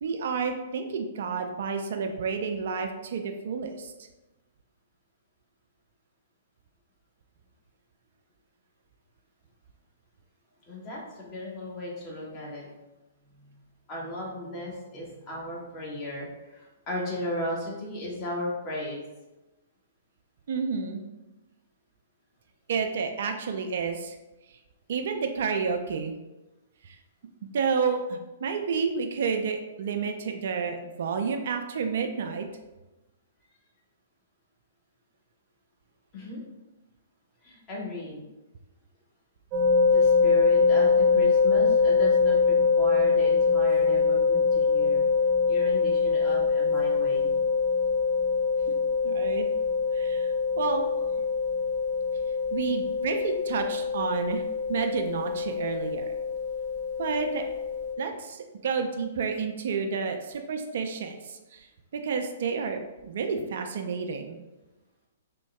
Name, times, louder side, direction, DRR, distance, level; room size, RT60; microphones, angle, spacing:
voice 1, 0.0-3.9 20.5-21.0 22.7-24.2 24.9-26.1 26.8-27.0 27.5-32.5 49.0-49.5 49.9-50.9 52.5-54.4 54.7-56.1 57.0-57.4 58.0-61.7 61.9-64.4, right 5 dB, 60° right, 5 dB, 0.3 m, -30 dB
voice 2, 10.7-12.7 13.3-13.6 13.9-19.0 36.1-36.4 37.4-38.2 39.8-45.0 45.5-47.3, left 1 dB, 30° left, -4 dB, 1.2 m, -36 dB
sound 1, 39.5-57.9, left 5 dB, 35° right, 0.7 m, -24 dB
3.5 x 2.2 x 3.3 m, 1.1 s
figure-of-eight pair, 120°, 0 cm